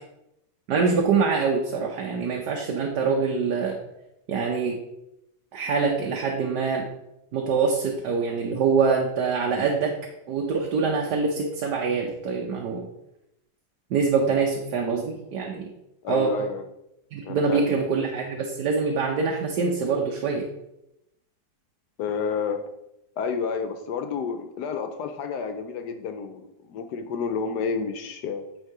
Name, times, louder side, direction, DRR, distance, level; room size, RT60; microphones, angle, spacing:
voice 1, 0.7-3.8 4.3-4.8 5.5-6.9 7.3-9.9 10.3-12.9 13.9-15.7 16.1-16.5 17.1-20.5, right 5 dB, 75° right, 0 dB, 1.4 m, -24 dB
voice 2, 16.0-16.6 17.2-17.6 22.0-22.6 23.2-28.4, left 6 dB, 75° left, 7 dB, 1.3 m, -30 dB
9.2 x 3.7 x 4.7 m, 0.85 s
omnidirectional pair, 1.8 m